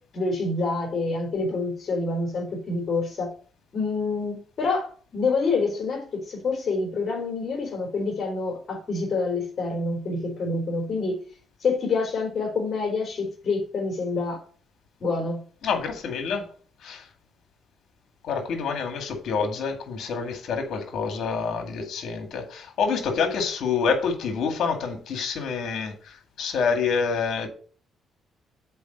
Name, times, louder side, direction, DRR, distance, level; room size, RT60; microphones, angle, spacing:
voice 1, 0.1-3.3 3.7-11.2 11.6-14.4 15.0-15.4, left 3 dB, 50° left, 3.9 m, -27 dB
voice 2, 15.6-16.5 16.8-17.0 18.2-27.5, left 5 dB, 70° left, 2.1 m, -27 dB
6.9 x 4.7 x 6.8 m
cardioid pair, 90°, 0 cm